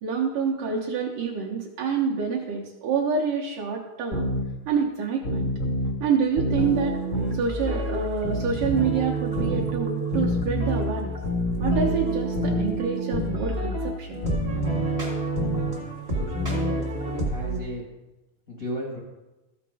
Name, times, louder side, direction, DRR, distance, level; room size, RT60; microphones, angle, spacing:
voice 1, 0.0-4.3 4.7-5.5 6.0-7.0 7.3-11.2 11.6-14.3, right 6 dB, 70° right, -3 dB, 2.3 m, -27 dB
sound 1, 4.1-4.4 5.2-5.9 6.4-6.7 7.1-7.4 8.2-8.9 9.3-9.7 10.1-10.4 11.2-11.9 12.3-12.7 13.1-13.4 14.2-14.9 15.3-15.7, left 1 dB, 90° left, 0.6 m, -27 dB
sound 2, 6.5-17.6, right 2 dB, 45° right, 0.4 m, -29 dB
voice 2, 16.1-17.9 18.5-19.0, left 1 dB, 55° left, -3 dB, 0.9 m, -34 dB
13.5 x 7.0 x 4.9 m, 1.0 s
omnidirectional pair, 4.3 m